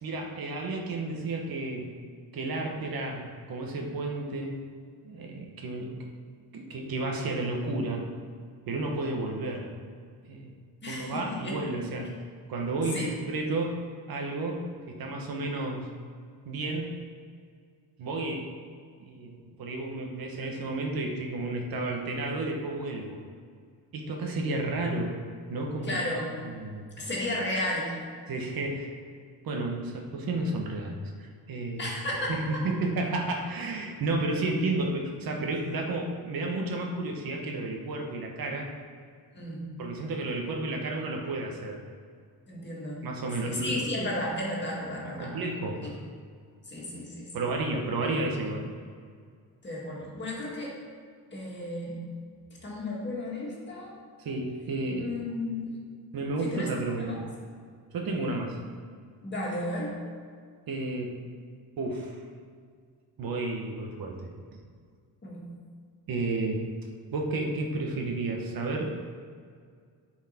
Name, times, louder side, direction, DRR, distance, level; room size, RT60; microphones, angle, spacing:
voice 1, 0.0-1.9 2.3-4.6 5.0-6.0 6.5-8.1 8.7-9.7 10.3-10.5 10.9-12.1 12.5-13.7 14.1-15.9 16.4-16.9 18.0-18.5 19.0-23.2 23.9-25.2 25.5-26.0 26.4-26.9 28.3-28.9 29.4-31.9 32.3-38.7 39.8-41.8 43.0-44.1 45.0-46.0 47.3-48.7 54.2-55.2 56.1-57.2 57.9-58.6 60.7-61.1 61.8-62.2 63.2-64.3 66.1-66.6 67.1-68.9, right 2 dB, 70° right, 1 dB, 1.3 m, -32 dB
voice 2, 10.8-11.6 12.9-13.1 25.8-26.3 27.0-28.0 31.8-32.3 39.3-39.7 42.5-43.0 43.4-45.3 46.7-47.3 48.3-48.4 49.6-50.7 51.3-52.0 52.6-53.9 55.0-55.8 56.4-56.7 57.0-57.2 59.2-60.0 65.2-65.5, left 1 dB, 30° left, -4 dB, 2.0 m, -33 dB
9.8 x 4.7 x 4.3 m, 2.1 s
cardioid pair, 150°, 37 cm